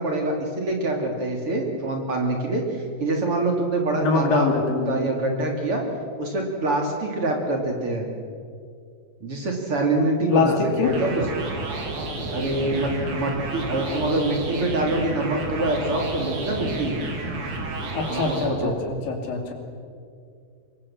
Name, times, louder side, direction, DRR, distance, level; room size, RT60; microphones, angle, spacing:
voice 1, 0.0-2.6 3.0-5.8 6.2-8.1 9.2-11.2 12.3-16.9 18.1-18.7, right 2 dB, 40° right, 2 dB, 3.4 m, -25 dB
voice 2, 4.0-5.1 10.3-11.0 17.9-19.5, left 4 dB, 75° left, 3 dB, 4.4 m, -24 dB
sound 1, 10.8-18.5, right 2 dB, 75° right, 5.3 m, -31 dB
25.5 x 22.0 x 7.3 m, 2.3 s
omnidirectional pair, 4.2 m